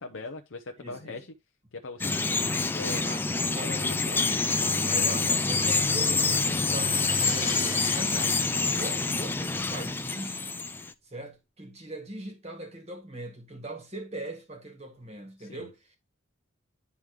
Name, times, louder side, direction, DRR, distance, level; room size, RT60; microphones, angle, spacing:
voice 1, 0.0-1.3 1.7-2.1 2.7-4.4 15.4-15.7, left 3 dB, 65° left, 0.7 m, -41 dB
voice 2, 0.8-1.2 3.0-3.2 3.5-3.9 4.6-8.4 8.8-10.6 11.0-16.0, right 1 dB, 30° right, 1.8 m, -41 dB
Bird vocalization bird call bird song, 2.0-10.9, left 3 dB, 10° left, 0.3 m, -27 dB
Crash cymbal, 6.4-10.2, left 5 dB, 35° left, 1.4 m, -39 dB
10.5 x 3.6 x 3.2 m
head